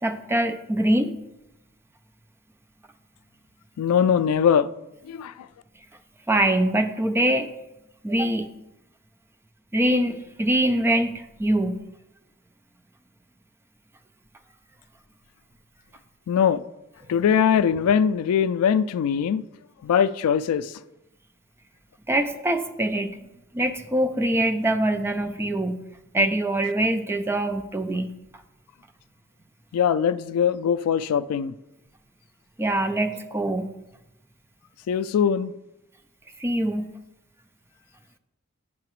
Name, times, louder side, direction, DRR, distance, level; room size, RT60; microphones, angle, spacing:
voice 1, 0.0-1.1 6.3-7.5 8.0-8.5 9.7-11.8 22.1-23.2 23.5-25.8 26.1-28.1 32.6-33.7 36.4-36.9, right 1 dB, 10° right, 0.4 m, -23 dB
voice 2, 3.8-4.7 5.0-5.3 16.3-16.6 17.1-19.4 19.8-20.7 29.7-31.5 34.9-35.5, left 7 dB, 80° left, 0.3 m, -21 dB
8.6 x 5.7 x 3.1 m
head